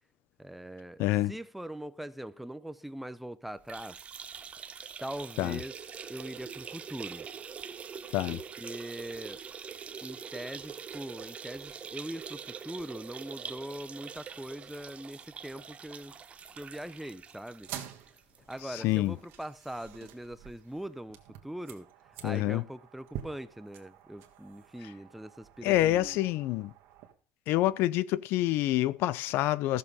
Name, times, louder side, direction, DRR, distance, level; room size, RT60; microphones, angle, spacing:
voice 1, 0.4-1.0 1.3-4.0 5.0-5.7 6.1-7.3 8.3-9.4 10.0-16.2 16.5-17.7 18.5-21.9 22.2-26.2, right 1 dB, 5° right, 0.7 m, -42 dB
voice 2, 1.0-1.3 5.4-5.6 8.1-8.4 18.7-19.1 22.2-22.6 25.6-26.7 27.5-29.8, left 15 dB, 70° left, 0.5 m, -27 dB
sound 1, 3.6-19.0 19.3-19.4 19.8-19.9 20.9-21.0, right 7 dB, 30° right, 0.8 m, -44 dB
sound 2, 17.5-27.1, right 10 dB, 70° right, 1.7 m, -48 dB
13.5 x 6.8 x 5.4 m
cardioid pair, 115°, 4 cm